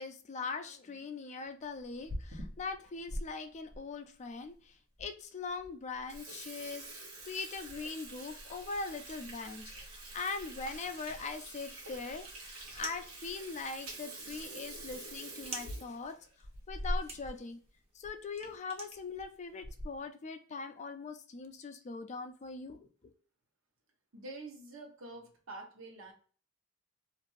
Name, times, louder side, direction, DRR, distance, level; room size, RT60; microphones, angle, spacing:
voice 1, 0.0-4.7 5.0-16.2 16.7-17.6 18.0-22.9, left 4 dB, 35° left, 7 dB, 0.4 m, -41 dB
Water tap faucet / Sink (filling or washing), 1.8-3.2 3.7-3.8 4.5-4.6 5.0-5.1 5.5-5.7 6.0-17.4 17.7-17.8 18.0-18.2 19.0-19.2 19.6-20.1, right 1 dB, 90° right, 1.0 m, -44 dB
sound 1, 10.7-19.6, right 3 dB, 30° right, 0.7 m, -50 dB
voice 2, 24.1-26.1, right 2 dB, 65° right, 3 dB, 0.9 m, -47 dB
2.6 x 2.5 x 3.0 m, 0.41 s
head